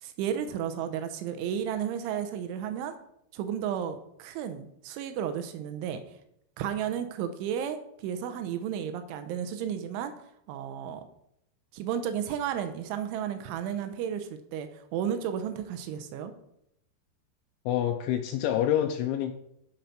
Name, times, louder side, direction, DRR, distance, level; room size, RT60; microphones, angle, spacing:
voice 1, 0.0-3.0 3.3-6.0 6.6-10.1 10.5-11.0 11.7-16.3, right 9 dB, 90° right, 9 dB, 3.2 m, -33 dB
voice 2, 17.7-19.3, left 11 dB, 80° left, 5 dB, 2.9 m, -27 dB
12.0 x 5.3 x 5.8 m, 0.76 s
omnidirectional pair, 5.6 m